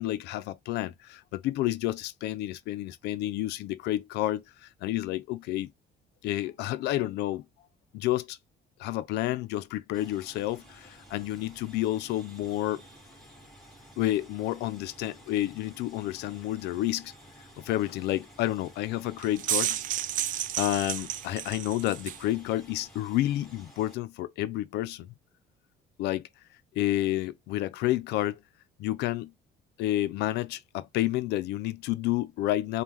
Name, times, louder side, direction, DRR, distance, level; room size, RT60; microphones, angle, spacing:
voice 1, 0.0-5.7 6.2-7.4 7.9-8.4 8.8-12.8 14.0-17.1 17.6-19.8 20.6-25.1 26.0-26.3 26.8-28.4 28.8-29.3 29.8-32.8, left 15 dB, 80° left, 0.5 m, -30 dB
sound 1, 9.9-23.9, equal, ahead, 1.7 m, -53 dB
sound 2, 19.2-22.2, right 12 dB, 50° right, 0.4 m, -31 dB
5.3 x 2.2 x 3.0 m
cardioid pair, 110°, 17 cm